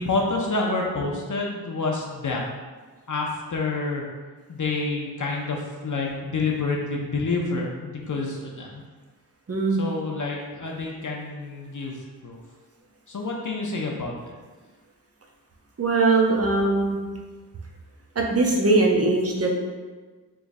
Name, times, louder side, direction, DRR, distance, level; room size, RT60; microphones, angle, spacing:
voice 1, 0.0-2.5 3.1-4.0 4.5-8.8 9.8-12.4 13.1-14.3, left 3 dB, 50° left, -1 dB, 0.6 m, -28 dB
voice 2, 9.5-9.8 15.8-17.0 18.2-19.5, right 3 dB, 35° right, 0 dB, 0.7 m, -21 dB
3.6 x 3.1 x 2.6 m, 1.4 s
wide cardioid pair, 55°, 40 cm